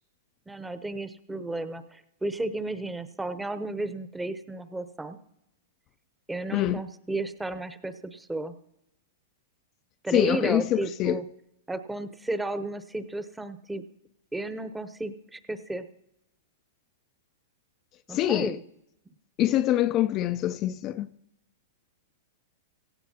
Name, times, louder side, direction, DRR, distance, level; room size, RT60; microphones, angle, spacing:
voice 1, 0.5-5.2 6.3-8.6 10.0-11.2 11.7-13.8 14.3-15.9 18.1-18.6, right 2 dB, 10° right, 0.8 m, -33 dB
voice 2, 10.1-11.2 18.1-18.6 19.4-21.1, left 13 dB, 35° left, 0.4 m, -25 dB
17.0 x 15.5 x 2.8 m
hypercardioid pair, 120°, 0 cm